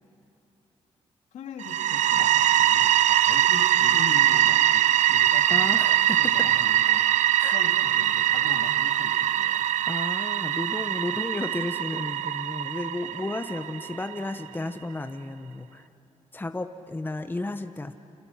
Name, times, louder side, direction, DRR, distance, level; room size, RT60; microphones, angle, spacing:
voice 1, 1.3-9.6, left 5 dB, 85° left, 3 dB, 2.5 m, -41 dB
sound 1, 1.6-14.3, right 12 dB, 75° right, 0.5 m, -22 dB
voice 2, 3.5-4.0 5.5-6.2 7.4-7.6 9.9-15.9 16.3-17.9, left 2 dB, 15° left, 8 dB, 1.1 m, -33 dB
30.0 x 26.5 x 5.9 m, 2.8 s
cardioid pair, 75°, 12 cm